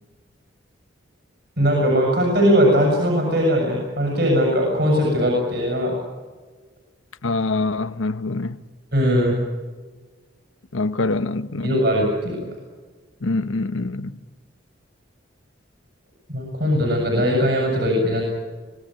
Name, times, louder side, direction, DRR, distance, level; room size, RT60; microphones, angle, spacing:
voice 1, 1.6-6.0 8.9-9.4 11.6-12.4 16.3-18.3, equal, 55° right, 7.2 m, -19 dB
voice 2, 7.2-8.6 10.7-11.7 13.2-14.2, left 3 dB, 85° left, 1.1 m, -24 dB
25.5 x 18.0 x 9.2 m
head